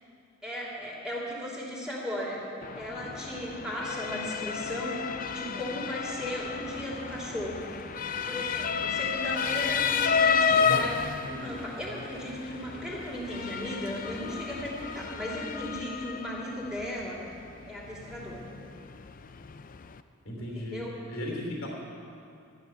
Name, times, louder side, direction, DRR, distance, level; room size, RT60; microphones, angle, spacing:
voice 1, 0.4-2.4 2.7-7.6 8.2-17.3 17.6-18.5 20.4-21.0, equal, 5° right, -6 dB, 2.8 m, -36 dB
Motor vehicle (road) / Siren, 2.6-20.0, left 6 dB, 40° left, 0.4 m, -32 dB
sound 1, 6.6-15.8, right 2 dB, 40° right, 1.8 m, -48 dB
voice 2, 20.2-21.7, left 1 dB, 70° left, -1 dB, 3.1 m, -36 dB
13.5 x 11.0 x 6.9 m, 2.5 s
head